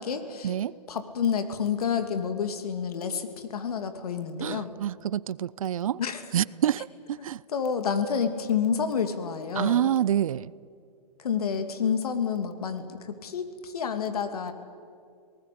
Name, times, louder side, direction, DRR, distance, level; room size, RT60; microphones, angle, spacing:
voice 1, 0.0-0.5 0.9-4.7 6.0-6.2 7.2-7.3 7.5-9.9 11.2-14.5, left 7 dB, 65° left, 2.6 m, -29 dB
voice 2, 4.4-6.0 6.3-7.4 9.5-10.5, right 10 dB, 60° right, 0.5 m, -27 dB
26.5 x 19.0 x 8.6 m
hypercardioid pair, 165°, 20 cm